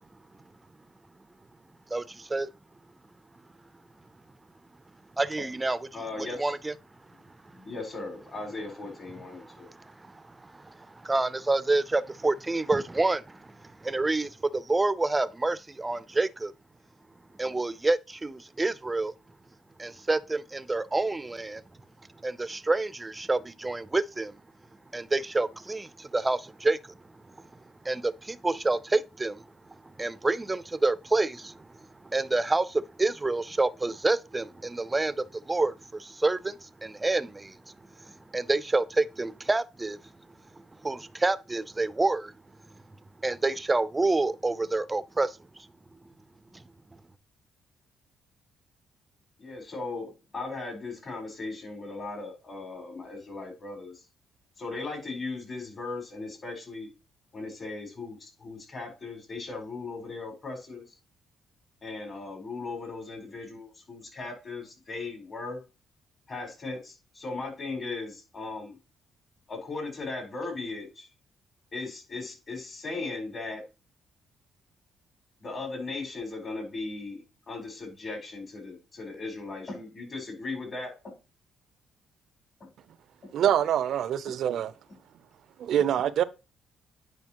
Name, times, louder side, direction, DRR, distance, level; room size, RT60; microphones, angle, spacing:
voice 1, 1.9-2.5 5.2-5.8 6.4-6.7 9.4-16.5 17.4-19.1 19.8-21.6 22.2-24.4 24.9-26.9 27.3-27.4 27.8-31.7 32.0-40.0 40.8-42.3 43.2-45.7 46.5-46.6, right 2 dB, 20° right, 0.5 m, -28 dB
voice 2, 5.9-6.5 7.5-9.7 49.4-54.0 54.6-56.9 57.3-60.8 61.8-65.6 66.3-68.7 69.5-71.1 71.7-73.6 75.4-81.1 83.2-83.3, left 3 dB, 40° left, 4.2 m, -37 dB
voice 3, 83.3-84.7 85.6-86.2, right 10 dB, 70° right, 0.5 m, -25 dB
9.7 x 5.0 x 2.9 m
cardioid pair, 90°, 0 cm